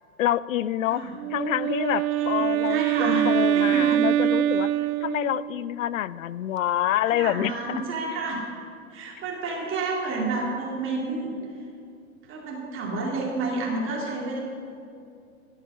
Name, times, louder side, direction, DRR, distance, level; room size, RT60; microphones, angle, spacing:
voice 1, 0.2-4.7 5.0-7.6, left 12 dB, 65° left, 19 dB, 0.5 m, -27 dB
Wind instrument woodwind instrument, 1.1-5.7, right 12 dB, 70° right, 0.5 m, -24 dB
voice 2, 2.2-3.3 3.6-4.1 7.1-8.4 8.9-11.3 12.3-14.4, right 3 dB, 25° right, -3 dB, 2.4 m, -30 dB
15.5 x 5.7 x 8.2 m, 2.5 s
figure-of-eight pair, 100°, 44 cm